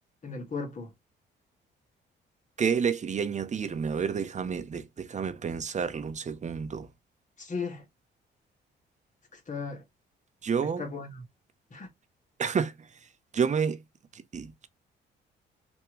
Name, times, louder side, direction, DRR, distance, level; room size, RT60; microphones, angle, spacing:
voice 1, 0.2-0.9 7.4-7.9 9.3-9.8 10.6-11.2 11.7-11.9, left 4 dB, 40° left, 1.8 m, -36 dB
voice 2, 2.6-6.9 10.4-10.9 12.4-12.7 13.3-13.8 14.3-14.7, right 6 dB, 35° right, 0.7 m, -29 dB
3.5 x 2.9 x 3.1 m
cardioid pair, 90°, 20 cm